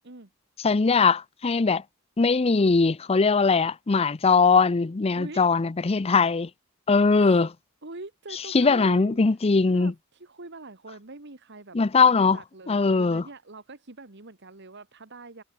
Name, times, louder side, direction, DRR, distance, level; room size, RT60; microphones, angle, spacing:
voice 1, 0.6-1.8 2.2-6.5 6.9-7.5 8.5-9.9 11.7-12.4 12.7-13.2, left 4 dB, 30° left, 0.5 m, -20 dB
voice 2, 5.1-5.5 7.1-7.5 7.8-9.4 9.7-15.4, right 2 dB, 55° right, 1.9 m, -43 dB
head